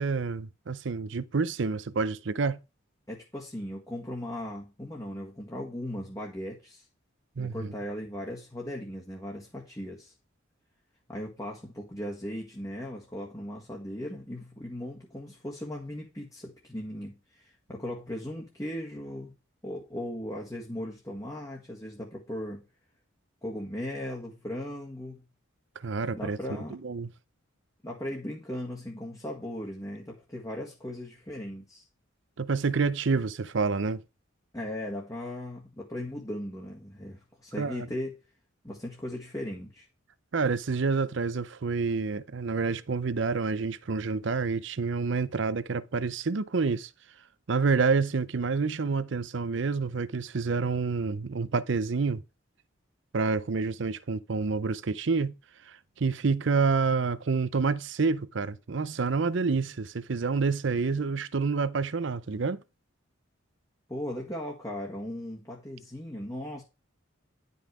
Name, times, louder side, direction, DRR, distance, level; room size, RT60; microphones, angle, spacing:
voice 1, 0.0-2.6 7.4-7.7 25.8-26.4 26.8-27.1 32.4-34.0 37.6-37.9 40.3-46.9 47.5-52.2 53.1-55.3 55.7-62.6, right 4 dB, 65° right, 0.6 m, -28 dB
voice 2, 3.1-6.9 7.4-10.1 11.1-19.3 19.6-22.7 23.4-25.2 26.1-26.8 27.8-31.8 34.5-38.1 38.6-39.9 63.9-66.6, left 1 dB, 15° left, 1.6 m, -38 dB
11.0 x 5.6 x 4.8 m
head